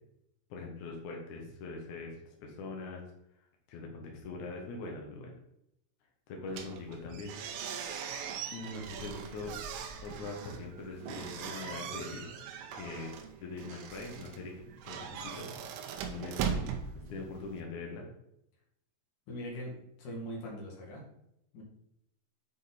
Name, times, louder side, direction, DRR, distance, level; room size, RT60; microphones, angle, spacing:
voice 1, 0.5-3.0 3.7-5.3 6.3-7.3 8.5-9.6 10.0-12.3 12.7-15.5 16.0-16.7 17.1-18.0, left 3 dB, 80° left, 0 dB, 1.7 m, -42 dB
sound 1, 6.5-17.6, right 7 dB, 85° right, 3.4 m, -40 dB
voice 2, 19.3-21.0 21.5-21.6, equal, 50° left, -3 dB, 2.9 m, -41 dB
8.2 x 5.4 x 4.1 m, 0.79 s
omnidirectional pair, 5.5 m